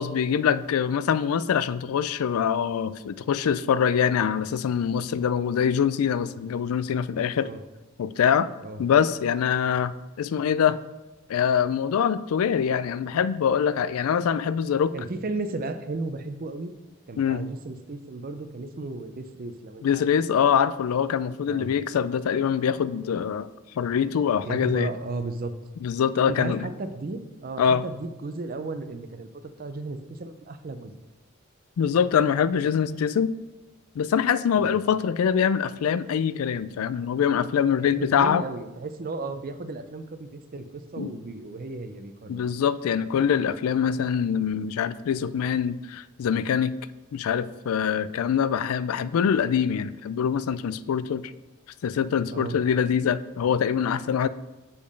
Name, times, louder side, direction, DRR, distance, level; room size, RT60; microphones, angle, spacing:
voice 1, 0.0-7.5 8.0-8.5 8.8-10.8 11.3-14.9 17.2-17.4 19.8-23.5 23.8-24.9 25.8-26.6 27.6-27.8 31.8-33.3 34.0-38.4 41.0-41.1 42.3-46.7 47.1-51.2 51.8-54.3, left 7 dB, 80° left, 16 dB, 0.3 m, -24 dB
voice 2, 14.9-16.7 17.1-20.1 21.5-21.7 24.4-25.5 26.3-30.9 34.5-34.8 37.8-42.4 52.3-52.6, right 3 dB, 40° right, 9 dB, 0.5 m, -34 dB
6.9 x 5.2 x 5.2 m, 1.1 s
head